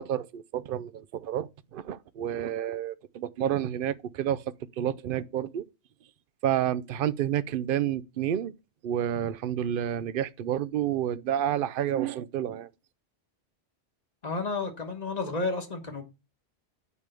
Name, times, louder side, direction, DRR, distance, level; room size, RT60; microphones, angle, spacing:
voice 1, 0.0-4.4 4.8-5.6 6.4-8.5 8.8-12.7, right 10 dB, 60° right, 0.7 m, -29 dB
voice 2, 14.2-16.0, left 3 dB, 40° left, 1.5 m, -31 dB
9.6 x 3.5 x 6.7 m
omnidirectional pair, 1.1 m